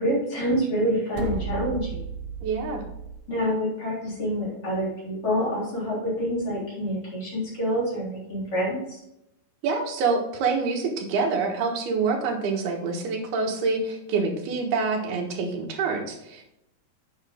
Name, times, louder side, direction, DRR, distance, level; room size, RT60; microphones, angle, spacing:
voice 1, 0.0-2.0 3.3-9.0, equal, 35° left, -6 dB, 4.0 m, -27 dB
sound 1, 1.1-3.2, right 5 dB, 70° right, 2.7 m, -34 dB
voice 2, 2.4-2.8 9.6-16.4, right 4 dB, 90° right, 1 dB, 3.5 m, -26 dB
9.0 x 7.2 x 3.6 m, 0.84 s
omnidirectional pair, 4.4 m